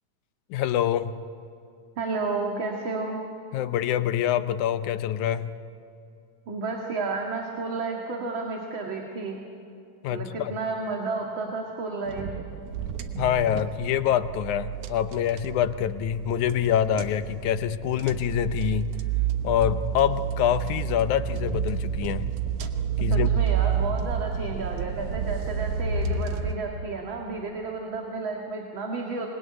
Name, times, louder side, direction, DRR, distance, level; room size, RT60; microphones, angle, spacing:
voice 1, 0.5-1.1 3.5-5.5 10.0-10.5 13.2-18.9 19.4-22.3 23.0-23.3, left 10 dB, 80° left, 12 dB, 2.2 m, -25 dB
voice 2, 2.0-3.2 6.5-9.4 10.1-12.3 23.0-29.3, right 3 dB, 45° right, 0 dB, 2.5 m, -32 dB
sound 1, 12.1-26.5, right 8 dB, 85° right, 2.6 m, -30 dB
26.5 x 20.5 x 9.8 m, 2.6 s
omnidirectional pair, 3.4 m